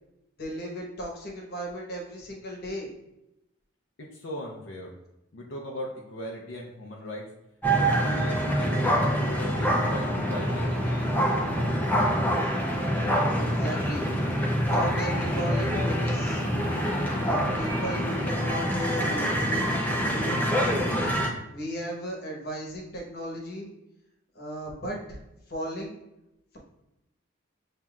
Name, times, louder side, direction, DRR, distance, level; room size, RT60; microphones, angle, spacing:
voice 1, 0.4-2.9 13.4-14.1 14.7-16.4 17.2-20.4 21.5-23.7 24.3-25.2 25.5-25.9, equal, 50° left, -1 dB, 1.1 m, -35 dB
voice 2, 4.0-4.9 5.3-7.3 7.7-10.8, left 1 dB, 75° left, -1 dB, 0.6 m, -38 dB
sound 1, 7.6-21.3, equal, 10° left, 0.5 m, -26 dB
7.4 x 2.8 x 2.3 m, 0.88 s
head